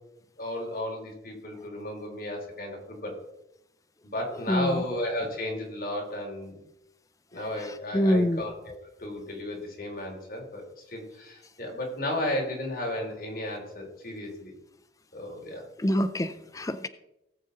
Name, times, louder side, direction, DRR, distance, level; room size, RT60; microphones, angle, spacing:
voice 1, 0.4-3.1 4.0-6.6 7.3-8.7 9.0-14.5 15.1-15.7, left 1 dB, 50° left, 3.6 m, -34 dB
voice 2, 4.5-4.8 7.7-8.4 15.8-16.9, left 1 dB, 20° left, 0.5 m, -26 dB
18.0 x 7.6 x 4.0 m
head